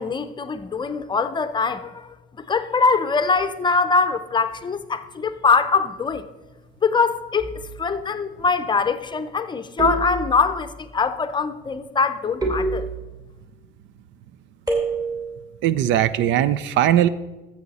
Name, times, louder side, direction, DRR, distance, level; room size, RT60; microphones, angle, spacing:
voice 1, 0.0-6.3 6.8-12.8, left 4 dB, 25° left, 0.6 m, -23 dB
sound 1, 7.4-7.9 9.8-10.7 12.4-13.4 14.7-15.4, right 3 dB, 20° right, 2.5 m, -27 dB
voice 2, 15.6-17.1, right 11 dB, 80° right, 0.5 m, -19 dB
14.0 x 7.2 x 4.1 m
cardioid pair, 120°, 19 cm